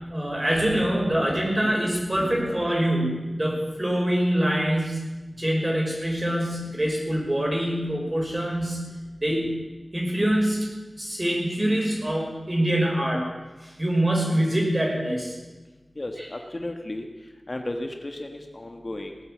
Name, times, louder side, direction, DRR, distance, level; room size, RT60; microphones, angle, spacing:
voice 1, 0.1-9.6 9.9-10.7 11.0-13.3 13.6-15.4 16.2-16.3, right 1 dB, 30° right, -1 dB, 5.4 m, -25 dB
voice 2, 16.0-17.1 17.5-19.2, left 1 dB, 40° left, 4 dB, 1.5 m, -34 dB
18.0 x 9.1 x 8.6 m, 1.2 s
wide cardioid pair, 70°, 0 cm